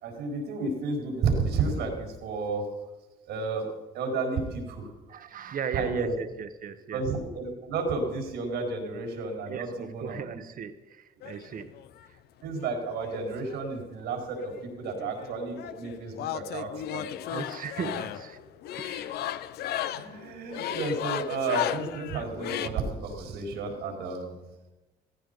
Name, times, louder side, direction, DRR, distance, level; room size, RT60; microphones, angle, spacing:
voice 1, 0.0-2.7 3.3-3.7 3.9-4.9 5.7-6.1 6.9-10.2 12.4-17.1 19.9-24.5, right 4 dB, 80° right, 3 dB, 4.4 m, -32 dB
voice 2, 5.1-7.0 9.5-11.7 12.1-12.2 17.3-18.4 18.8-19.2, right 7 dB, 55° right, 11 dB, 1.3 m, -37 dB
sound 1, 11.2-12.1 12.9-14.1 14.3-22.7, left 12 dB, 70° left, 0.7 m, -35 dB
16.0 x 15.0 x 5.3 m, 1.1 s
supercardioid pair, 70°, 17 cm